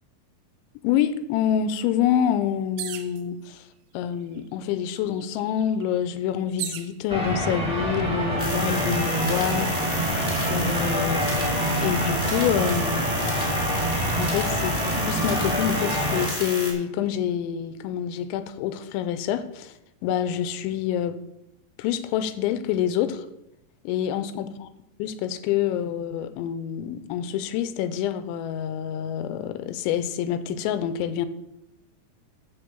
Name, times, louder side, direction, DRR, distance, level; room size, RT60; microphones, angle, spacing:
voice 1, 0.8-3.6 3.9-9.7 10.5-11.2 11.8-13.1 14.2-14.8 15.0-19.7 20.0-21.2 21.8-23.3 23.8-24.5 25.0-31.3, left 9 dB, 85° left, 11 dB, 2.9 m, -27 dB
sound 1, 2.8-3.2 4.1-4.2 4.5-6.9 7.7-8.2, right 11 dB, 90° right, 3.1 m, -36 dB
sound 2, 7.1-16.3, equal, 5° right, 1.1 m, -26 dB
sound 3, 8.4-16.7, equal, 15° left, 0.4 m, -32 dB
12.5 x 4.3 x 6.9 m, 0.85 s
omnidirectional pair, 5.3 m